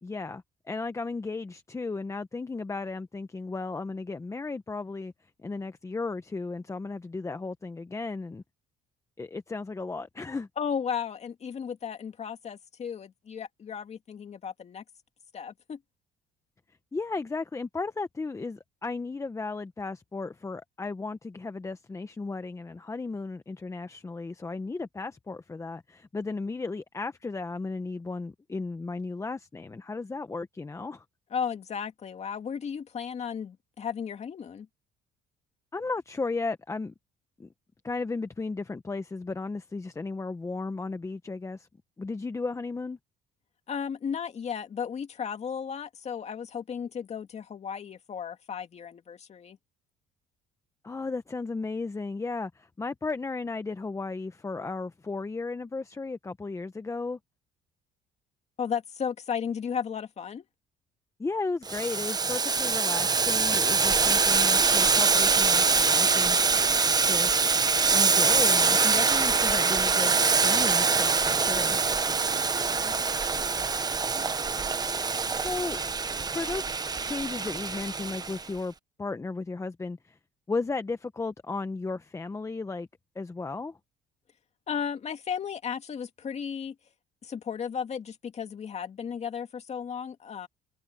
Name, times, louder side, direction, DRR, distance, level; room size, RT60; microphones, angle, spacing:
voice 1, 0.0-5.1 5.4-8.4 9.2-10.5 16.9-31.0 35.7-36.9 37.4-37.5 37.8-41.7 42.0-43.0 50.8-57.2 61.2-66.4 67.0-67.4 67.9-71.8 75.3-75.8 76.2-76.7 77.0-78.7 79.0-80.2 80.5-82.9 83.1-83.8, left 3 dB, 15° left, 1.0 m, -35 dB
voice 2, 10.6-14.8 15.3-15.8 31.3-34.7 43.7-49.6 58.6-60.4 72.5-72.9 84.7-86.7 87.2-90.5, left 7 dB, 40° left, 2.3 m, -34 dB
Boiling, 61.7-78.4, right 4 dB, 25° right, 1.0 m, -24 dB
cardioid pair, 110°, 17 cm